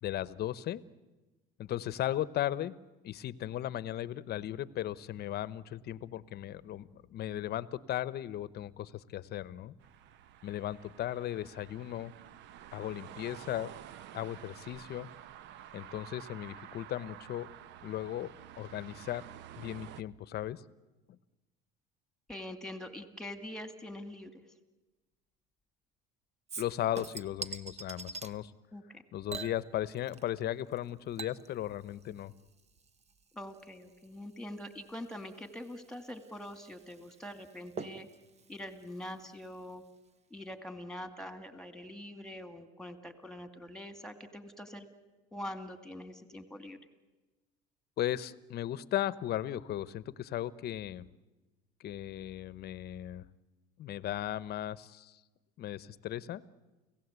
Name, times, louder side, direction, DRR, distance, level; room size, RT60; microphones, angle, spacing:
voice 1, 0.0-0.8 1.6-2.8 3.0-9.7 10.4-12.1 12.7-13.7 14.1-15.1 15.7-17.5 17.8-19.2 19.6-20.6 21.1-21.2 26.6-28.5 29.1-32.3 48.0-51.1 51.8-53.2 53.8-55.2 55.6-56.4, left 12 dB, 50° left, 18 dB, 0.9 m, -36 dB
sound 1, 9.8-20.0, right 11 dB, 60° right, 0.8 m, -50 dB
voice 2, 22.3-24.4 28.7-29.0 33.3-38.1 38.5-39.8 40.3-44.9 45.3-46.8, left 1 dB, 5° left, 9 dB, 2.3 m, -44 dB
Chink clink / Liquid, 26.5-28.3 29.3-30.4 30.7-39.7 40.1-40.2, right 4 dB, 30° right, 1.1 m, -47 dB
30.0 x 17.0 x 8.2 m, 1.1 s
supercardioid pair, 100°, 21 cm